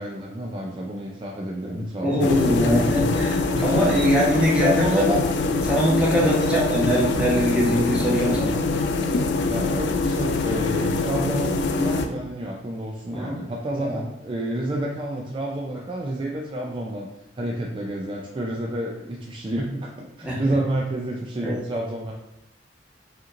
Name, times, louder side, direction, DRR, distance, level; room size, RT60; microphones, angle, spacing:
voice 1, 0.0-2.8 3.5-3.9 4.3-5.2 6.2-6.9 9.5-22.1, right 1 dB, 30° right, -1 dB, 0.4 m, -29 dB
voice 2, 1.7-5.2 5.7-8.6 13.1-13.4 13.8-14.0 20.2-20.4 21.4-21.6, equal, 5° right, -6 dB, 1.0 m, -22 dB
sound 1, 2.2-12.1, left 3 dB, 70° left, 0.4 m, -24 dB
5.0 x 3.0 x 2.5 m, 0.89 s
head